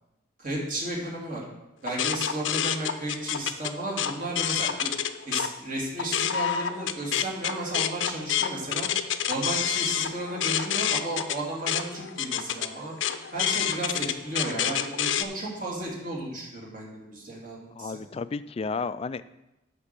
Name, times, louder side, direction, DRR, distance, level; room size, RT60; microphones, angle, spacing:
voice 1, 0.4-1.4 1.8-4.9 5.2-8.9 9.3-12.9 13.3-18.0, right 1 dB, 45° right, -3 dB, 2.5 m, -33 dB
sound 1, 1.9-5.5 5.9-15.2, left 9 dB, 80° left, 0.6 m, -28 dB
voice 2, 17.8-19.3, left 4 dB, 30° left, 14 dB, 0.3 m, -32 dB
8.6 x 6.0 x 6.7 m, 0.96 s
head